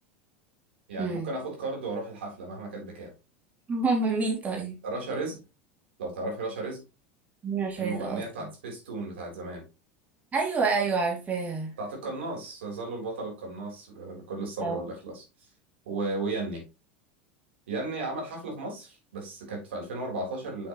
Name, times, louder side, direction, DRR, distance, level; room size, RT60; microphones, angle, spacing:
voice 1, 0.9-3.1 4.8-5.4 6.0-6.8 7.8-9.6 11.8-15.2 15.9-16.6 17.7-20.7, right 2 dB, 85° right, 0 dB, 3.9 m, -35 dB
voice 2, 3.7-4.8 7.4-8.5 10.3-11.7 14.6-14.8, right 4 dB, 25° right, 0 dB, 2.8 m, -28 dB
6.8 x 6.4 x 3.1 m, 0.28 s
supercardioid pair, 105°, 6 cm